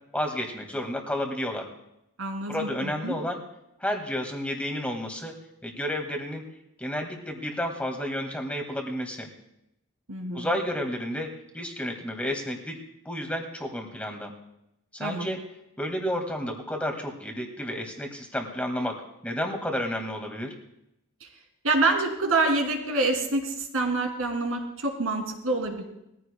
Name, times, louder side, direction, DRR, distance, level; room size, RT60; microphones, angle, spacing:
voice 1, 0.1-1.7 2.5-3.4 3.8-5.3 5.6-6.4 6.8-9.3 10.3-11.3 11.5-12.8 13.1-14.3 14.9-15.4 15.8-20.5, equal, 5° left, 3 dB, 1.8 m, -31 dB
voice 2, 2.2-3.1 10.1-10.5 15.0-15.3 21.6-25.8, right 2 dB, 70° right, 2 dB, 2.7 m, -26 dB
21.0 x 15.0 x 2.2 m, 0.84 s
head